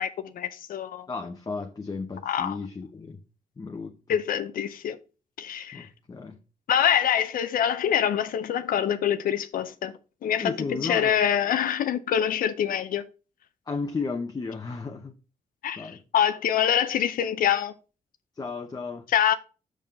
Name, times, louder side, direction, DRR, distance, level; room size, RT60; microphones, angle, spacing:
voice 1, 0.0-1.1 2.2-2.6 4.1-5.0 5.4-5.9 6.7-9.9 10.2-13.0 15.6-17.7 19.1-19.3, left 9 dB, 85° left, 0.6 m, -25 dB
voice 2, 1.1-3.2 3.6-4.2 5.7-6.4 10.4-11.2 13.7-15.1 15.8-16.0 18.3-19.1, left 4 dB, 25° left, 0.8 m, -34 dB
6.3 x 5.5 x 5.1 m
cardioid pair, 115°, 14 cm